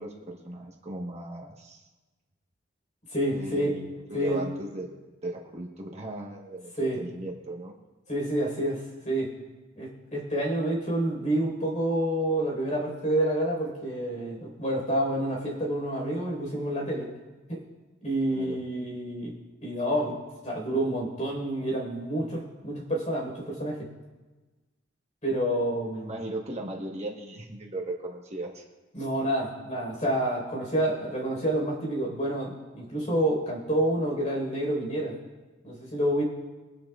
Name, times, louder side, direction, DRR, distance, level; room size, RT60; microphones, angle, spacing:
voice 1, 0.0-1.9 3.3-7.7 18.3-18.6 26.0-28.6, right 2 dB, 35° right, 0 dB, 1.3 m, -37 dB
voice 2, 3.1-3.8 4.1-4.4 6.8-7.0 8.1-9.3 9.8-17.1 17.5-17.6 18.0-19.3 19.6-20.2 20.4-23.8 25.2-26.2 28.9-35.2 35.6-36.2, right 1 dB, 35° left, -1 dB, 4.4 m, -28 dB
22.5 x 10.5 x 2.4 m, 1.2 s
head